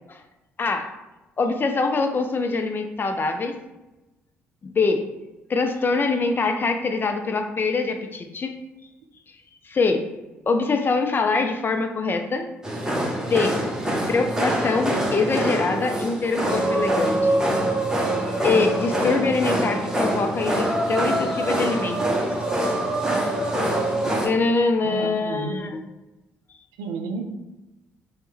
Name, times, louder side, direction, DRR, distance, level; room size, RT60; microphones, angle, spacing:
voice 1, 0.6-0.9 1.4-3.6 4.6-5.1 5.5-8.5 9.6-10.1 10.5-12.5 13.3-13.6 14.1-17.5 18.4-22.0 24.2-25.8, left 4 dB, 35° left, 6 dB, 0.4 m, -24 dB
sound 1, 12.6-24.3, right 1 dB, 10° right, 0.8 m, -24 dB
voice 2, 24.8-25.7 26.8-27.2, right 3 dB, 75° right, 4 dB, 0.4 m, -31 dB
3.1 x 2.1 x 3.1 m, 1.0 s
hypercardioid pair, 45°, 6 cm